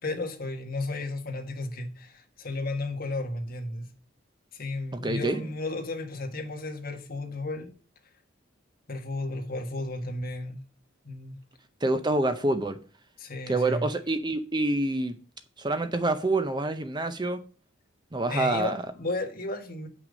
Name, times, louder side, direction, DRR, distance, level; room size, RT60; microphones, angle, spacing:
voice 1, 0.0-3.9 4.5-7.7 8.9-10.6 11.0-11.4 13.2-13.9 18.3-19.9, left 2 dB, 45° left, 1.6 m, -33 dB
voice 2, 4.9-5.4 11.8-12.8 13.5-15.2 15.6-17.4 18.1-18.8, right 2 dB, 20° right, 0.6 m, -27 dB
8.0 x 6.1 x 5.1 m
head